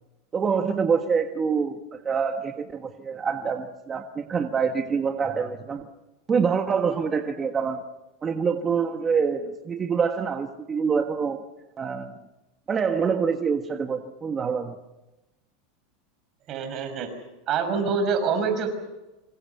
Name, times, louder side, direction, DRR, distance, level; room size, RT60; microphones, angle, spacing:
voice 1, 0.3-5.9 6.3-7.8 8.2-11.4 11.8-12.1 12.7-14.8, right 6 dB, 25° right, 5 dB, 1.5 m, -26 dB
voice 2, 16.5-17.1 17.5-18.7, right 5 dB, 40° right, 7 dB, 6.0 m, -25 dB
26.0 x 25.5 x 5.7 m, 1.0 s
supercardioid pair, 130°, 0 cm